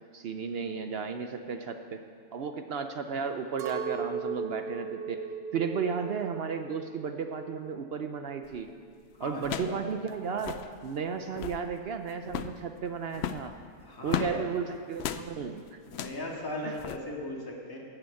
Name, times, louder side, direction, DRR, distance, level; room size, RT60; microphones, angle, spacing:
voice 1, 0.1-2.0 2.3-5.3 5.5-8.7 9.2-13.6 14.0-15.8 16.6-16.8, right 6 dB, 65° right, 7 dB, 0.6 m, -34 dB
Chink clink, 3.6-9.0, right 5 dB, 85° right, 1.5 m, -38 dB
sound 1, 8.4-8.7 9.4-9.8 10.1-10.2 10.3-10.7 11.2-11.7 12.2-12.6 13.1-14.4 15.0-15.3 15.9-16.2 16.8-17.0, left 10 dB, 75° left, 0.6 m, -35 dB
voice 2, 9.2-9.9 13.8-14.4 15.9-17.8, left 1 dB, 15° left, -2 dB, 1.7 m, -38 dB
12.0 x 6.8 x 8.3 m, 2.1 s
omnidirectional pair, 1.6 m